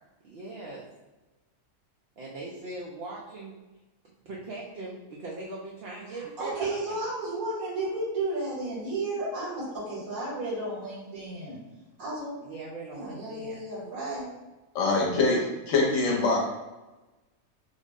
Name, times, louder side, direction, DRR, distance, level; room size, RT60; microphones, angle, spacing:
voice 1, 0.2-0.8 2.2-3.5 4.3-7.0 12.4-13.6 16.0-16.1, right 2 dB, 60° right, -3 dB, 0.6 m, -40 dB
voice 2, 6.1-11.6 12.0-12.3 12.9-14.3, right 2 dB, 80° right, -7 dB, 2.0 m, -33 dB
voice 3, 14.7-16.4, left 3 dB, 70° left, -1 dB, 1.0 m, -24 dB
3.5 x 2.0 x 3.5 m, 1.1 s
omnidirectional pair, 1.4 m